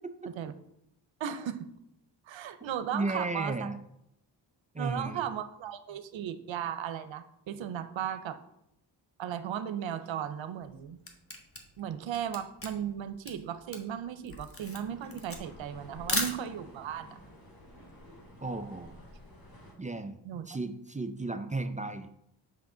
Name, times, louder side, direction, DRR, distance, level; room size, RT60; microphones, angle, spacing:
voice 1, 1.2-1.7 2.2-3.7 4.8-8.4 9.2-11.0 11.8-17.1 20.2-20.5, right 9 dB, 80° right, 11 dB, 0.7 m, -36 dB
voice 2, 2.9-3.8 4.7-5.2 18.4-19.0 19.8-22.1, right 2 dB, 15° right, 8 dB, 0.4 m, -34 dB
Camera, 10.6-16.9, left 2 dB, 30° left, 1.3 m, -37 dB
sound 1, 14.6-19.7, equal, 50° left, 2.7 m, -51 dB
5.8 x 5.6 x 3.8 m, 0.78 s
cardioid pair, 60°, 45 cm